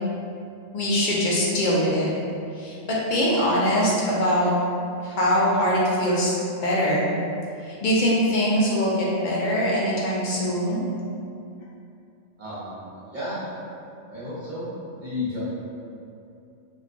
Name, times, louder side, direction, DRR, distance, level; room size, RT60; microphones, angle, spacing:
voice 1, 0.7-2.1 2.6-4.5 5.0-6.4 6.6-7.1 7.6-10.9, equal, 55° left, -5 dB, 0.5 m, -22 dB
voice 2, 12.4-13.4 14.1-14.7 14.9-15.4, left 2 dB, 45° right, -10 dB, 0.8 m, -33 dB
2.3 x 2.3 x 3.7 m, 2.6 s
omnidirectional pair, 1.2 m